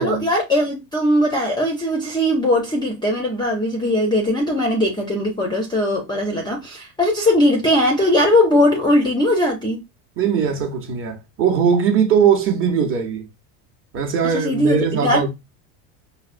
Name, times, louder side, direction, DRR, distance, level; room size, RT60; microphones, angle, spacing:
voice 1, 0.0-9.8 14.3-15.3, left 1 dB, 10° left, 0.4 m, -19 dB
voice 2, 10.2-13.3 13.9-15.3, right 7 dB, 30° right, 0.7 m, -20 dB
4.8 x 2.0 x 2.4 m
cardioid pair, 145°, 45 cm